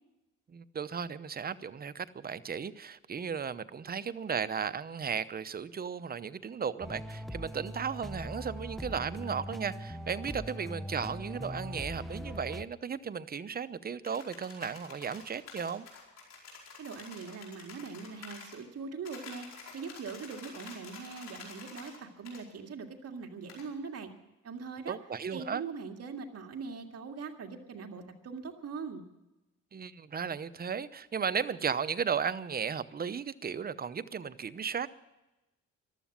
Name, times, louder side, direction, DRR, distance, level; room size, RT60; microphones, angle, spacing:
voice 1, 0.5-15.9 24.9-25.6 29.7-34.9, right 6 dB, 30° right, 0.8 m, -35 dB
sound 1, 6.8-12.7, equal, ahead, 0.7 m, -41 dB
sound 2, 14.0-18.6 19.0-22.0 22.2-22.4 23.5-23.7, left 4 dB, 60° left, 5.0 m, -49 dB
voice 2, 16.8-24.1 24.4-25.0 25.3-29.0, right 5 dB, 55° right, 2.2 m, -41 dB
14.5 x 12.0 x 7.4 m
cardioid pair, 90°, 30 cm